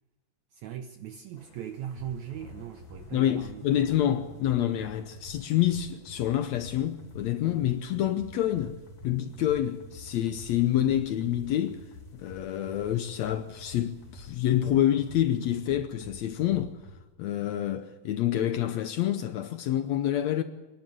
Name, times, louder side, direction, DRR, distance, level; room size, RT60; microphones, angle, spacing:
voice 1, 0.5-3.6, right 10 dB, 80° right, 1.6 m, -39 dB
sound 1, 1.3-15.8, left 2 dB, 35° left, 3.5 m, -59 dB
sound 2, 2.0-17.0, left 2 dB, 60° left, 4.1 m, -48 dB
voice 2, 3.1-8.8 9.0-11.8 12.1-16.8 17.2-20.4, left 11 dB, 80° left, 1.6 m, -27 dB
25.0 x 11.5 x 9.3 m
omnidirectional pair, 4.2 m